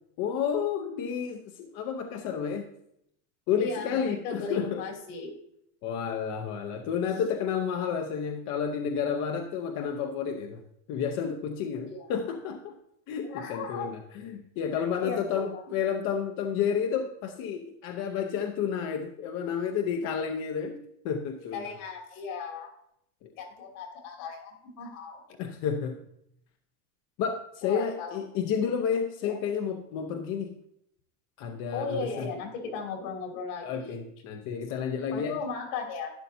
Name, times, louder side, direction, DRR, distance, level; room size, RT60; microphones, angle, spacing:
voice 1, 0.2-2.7 3.5-4.8 5.8-10.6 10.9-12.8 13.1-21.7 23.2-23.3 25.4-26.0 27.2-30.6 31.4-32.3 33.6-35.4, left 7 dB, 45° left, 4 dB, 0.8 m, -31 dB
voice 2, 3.6-5.3 11.8-12.1 13.2-13.9 14.8-15.6 21.5-22.7 23.4-25.2 27.6-28.2 29.2-29.4 31.7-34.0 35.1-36.1, left 4 dB, 70° left, 1 dB, 2.9 m, -36 dB
12.0 x 10.5 x 2.7 m, 0.75 s
cardioid pair, 160°, 41 cm